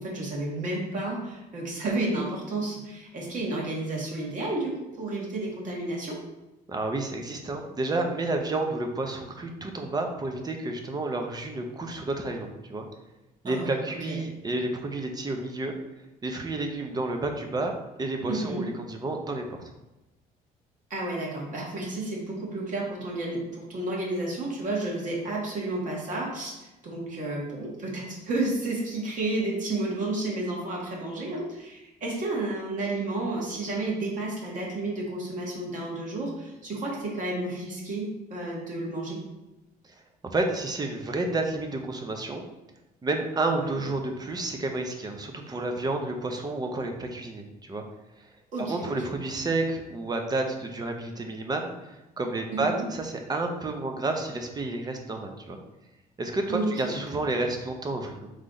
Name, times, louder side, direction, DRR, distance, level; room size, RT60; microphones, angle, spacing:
voice 1, 0.0-4.7 5.0-6.2 13.4-13.7 14.1-14.2 18.3-18.6 20.9-26.6 26.8-39.2 48.5-49.0 52.5-52.8 56.5-56.7, right 2 dB, 50° right, -4 dB, 1.5 m, -31 dB
voice 2, 6.7-12.9 13.4-15.7 16.2-17.7 18.0-19.6 39.8-42.4 43.0-47.8 48.2-48.3 48.6-55.6 56.2-58.3, right 2 dB, 25° right, 4 dB, 0.6 m, -30 dB
3.9 x 3.3 x 3.8 m, 0.98 s
cardioid pair, 110°, 17 cm